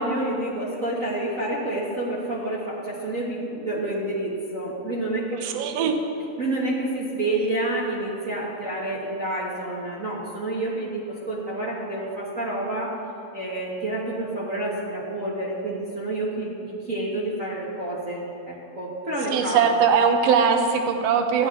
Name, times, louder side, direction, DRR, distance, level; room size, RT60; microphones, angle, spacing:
voice 1, 0.0-5.4 6.4-12.9 13.3-19.6, right 1 dB, 45° right, -6 dB, 1.0 m, -29 dB
voice 2, 5.4-6.0 19.3-21.5, right 6 dB, 70° right, 5 dB, 1.8 m, -20 dB
15.0 x 10.5 x 3.7 m, 2.7 s
omnidirectional pair, 3.4 m